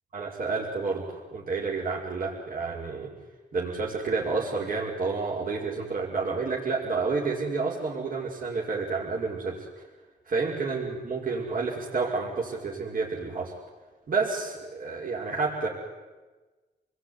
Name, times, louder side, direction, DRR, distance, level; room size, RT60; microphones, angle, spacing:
voice 1, 0.1-3.1 3.5-9.7 10.3-13.5 14.1-15.7, right 4 dB, 55° right, -4 dB, 5.3 m, -30 dB
28.5 x 20.5 x 9.7 m, 1.3 s
cardioid pair, 100°, 18 cm